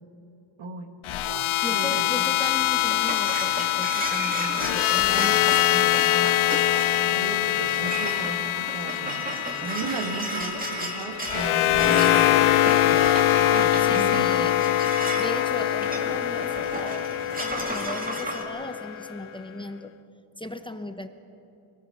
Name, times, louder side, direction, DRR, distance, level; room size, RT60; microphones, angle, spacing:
voice 1, 0.6-0.9 1.3-2.4 7.0-9.3 9.6-14.5, right 4 dB, 80° right, 6 dB, 1.9 m, -36 dB
sound 1, 1.0-19.2, left 13 dB, 85° left, 0.6 m, -24 dB
voice 2, 1.6-6.5 11.8-12.1 13.8-14.6 15.1-17.1 17.4-19.9 20.4-21.1, left 1 dB, 10° left, 8 dB, 0.9 m, -37 dB
sound 2, 2.6-18.4, right 1 dB, 20° right, 2.4 m, -34 dB
24.5 x 19.0 x 6.6 m, 2.8 s
wide cardioid pair, 130°, 47 cm